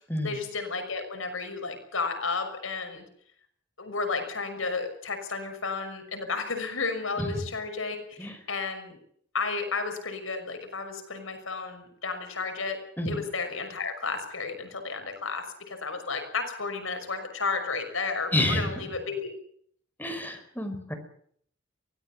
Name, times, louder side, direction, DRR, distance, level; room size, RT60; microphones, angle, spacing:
voice 1, 0.2-3.0 3.8-9.0 9.3-12.8 13.1-19.3, left 4 dB, 85° left, 6 dB, 6.2 m, -32 dB
voice 2, 18.3-18.7 20.0-20.9, left 1 dB, 10° left, 7 dB, 5.1 m, -29 dB
24.0 x 18.0 x 7.5 m, 0.63 s
head